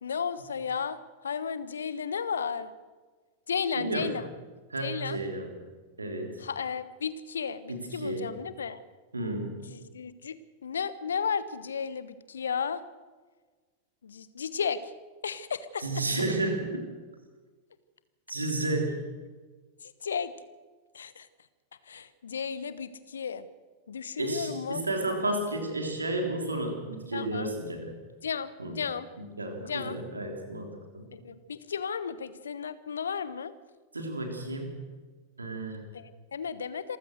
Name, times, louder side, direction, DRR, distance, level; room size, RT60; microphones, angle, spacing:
voice 1, 0.0-2.7 3.5-4.3 4.8-5.2 6.4-8.8 9.6-10.3 10.6-12.8 14.0-14.9 15.2-15.9 19.8-20.3 20.9-21.3 21.8-23.5 23.9-24.8 27.1-27.5 28.2-29.1 29.6-30.0 31.1-33.5 35.9-37.0, left 6 dB, 70° left, 15 dB, 1.1 m, -34 dB
voice 2, 3.8-4.1 4.7-5.5 6.0-6.4 7.7-8.3 9.1-9.6 15.8-16.9 18.3-19.0 24.2-28.0 28.6-28.7 29.2-31.1 33.9-34.8 35.4-35.8, right 2 dB, 80° right, 4 dB, 3.5 m, -32 dB
27.0 x 15.0 x 6.5 m, 1.4 s
figure-of-eight pair, 90°, 0 cm